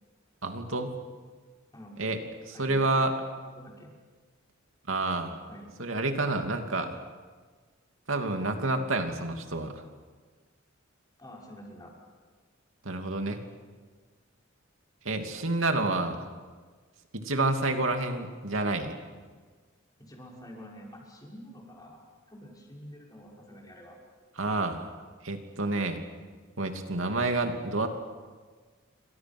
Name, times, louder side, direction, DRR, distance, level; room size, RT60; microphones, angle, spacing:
voice 1, 0.4-1.0 2.0-2.2 2.5-3.1 4.9-5.3 5.8-7.0 8.1-9.8 12.8-13.4 15.0-16.3 17.1-19.0 24.4-24.9 25.2-26.0 26.6-27.9, right 2 dB, 75° right, 5 dB, 2.8 m, -29 dB
voice 2, 1.7-2.1 2.5-3.9 5.5-5.7 11.2-11.9 20.0-22.0 22.3-24.0, equal, 20° left, -2 dB, 6.2 m, -48 dB
29.0 x 25.5 x 6.2 m, 1.4 s
head